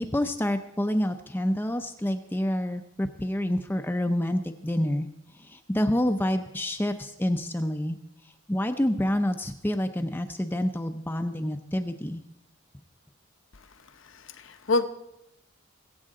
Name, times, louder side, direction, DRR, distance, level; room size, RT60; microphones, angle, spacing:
voice 1, 0.0-5.1 5.3-8.0 8.5-12.2, left 1 dB, 10° left, 6 dB, 0.5 m, -28 dB
voice 2, 14.0-14.9, left 3 dB, 70° left, 9 dB, 0.9 m, -27 dB
22.0 x 8.6 x 3.7 m, 0.84 s
head